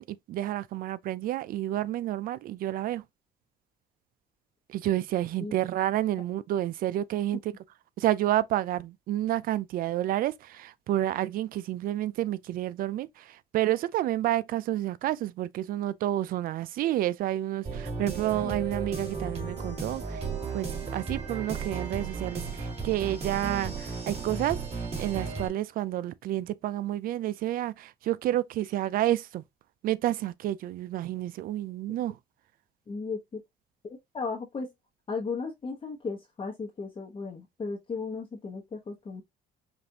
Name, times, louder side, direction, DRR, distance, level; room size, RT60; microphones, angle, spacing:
voice 1, 0.0-3.0 4.7-7.5 8.0-20.3 20.5-24.6 25.0-29.4 29.8-32.2, right 13 dB, 60° right, 0.4 m, -30 dB
sound 1, 17.6-25.5, right 4 dB, 35° right, 2.0 m, -35 dB
voice 2, 32.9-33.4 33.8-34.7 35.1-39.2, left 4 dB, 30° left, 0.9 m, -35 dB
5.2 x 2.5 x 2.7 m
cardioid pair, 110°, 17 cm